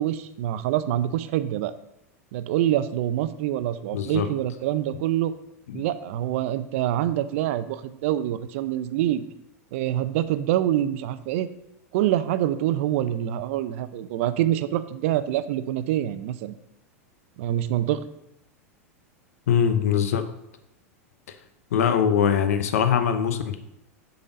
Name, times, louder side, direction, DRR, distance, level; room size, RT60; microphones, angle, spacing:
voice 1, 0.0-1.7 2.3-5.3 5.7-9.2 9.7-11.5 11.9-16.6 17.4-18.0, right 12 dB, 60° right, 13 dB, 0.5 m, -25 dB
voice 2, 3.9-4.3 5.7-5.8 19.5-20.3 21.7-23.6, left 8 dB, 70° left, 9 dB, 0.7 m, -22 dB
6.8 x 4.0 x 5.1 m, 0.83 s
hypercardioid pair, 95°, 8 cm